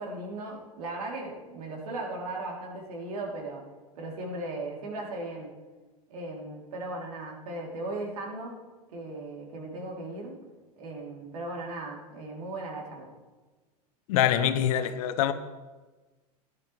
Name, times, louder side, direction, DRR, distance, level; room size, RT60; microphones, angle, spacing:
voice 1, 0.0-3.6 3.9-5.5 6.1-8.5 8.9-10.3 10.8-13.1, right 2 dB, 70° right, -1 dB, 3.2 m, -37 dB
voice 2, 14.1-15.3, left 10 dB, 65° left, 11 dB, 0.9 m, -24 dB
16.5 x 11.0 x 3.3 m, 1.3 s
hypercardioid pair, 90°, 20 cm